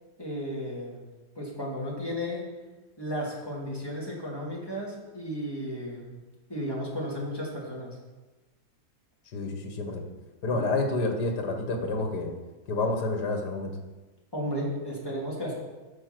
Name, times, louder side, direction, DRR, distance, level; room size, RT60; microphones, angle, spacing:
voice 1, 0.2-1.0 1.4-2.5 3.0-6.2 6.5-8.0 10.5-10.6 14.3-15.5, equal, 15° left, -4 dB, 2.7 m, -34 dB
voice 2, 9.3-10.0 10.4-12.3 12.7-13.7, left 2 dB, 85° left, 4 dB, 2.1 m, -29 dB
12.0 x 5.9 x 6.0 m, 1.2 s
omnidirectional pair, 1.7 m